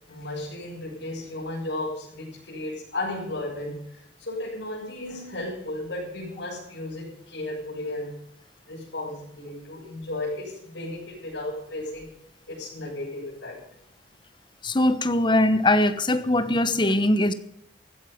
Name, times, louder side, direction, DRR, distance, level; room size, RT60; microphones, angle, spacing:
voice 1, 0.1-8.1 8.7-12.1 12.5-13.6, left 2 dB, 75° left, 7.5 m, -34 dB
voice 2, 14.6-17.3, left 1 dB, 25° left, 1.0 m, -21 dB
15.5 x 14.0 x 5.2 m
head